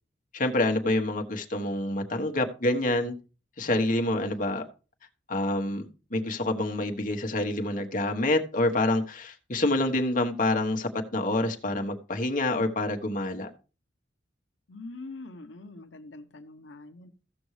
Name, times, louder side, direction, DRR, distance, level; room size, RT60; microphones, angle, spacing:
voice 1, 0.3-3.1 3.6-4.6 5.3-13.5, left 2 dB, 45° left, 1.3 m, -27 dB
voice 2, 14.7-17.1, left 2 dB, 80° left, 0.9 m, -43 dB
15.5 x 6.2 x 3.2 m
head